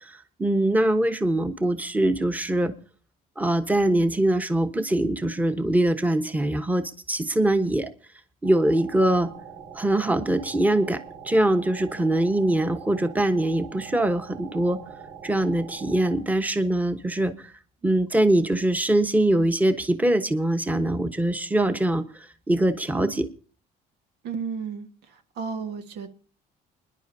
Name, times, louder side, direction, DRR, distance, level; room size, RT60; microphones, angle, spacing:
voice 1, 0.0-2.7 3.4-7.9 8.4-9.3 9.7-11.0 11.2-14.8 15.2-17.5 17.8-23.3, right 1 dB, 10° right, 8 dB, 1.2 m, -23 dB
sound 1, 8.4-16.2, right 6 dB, 50° right, 4.5 m, -43 dB
voice 2, 24.2-26.1, right 6 dB, 80° right, 7 dB, 1.7 m, -33 dB
29.5 x 10.5 x 2.8 m, 0.41 s
cardioid pair, 110°, 17 cm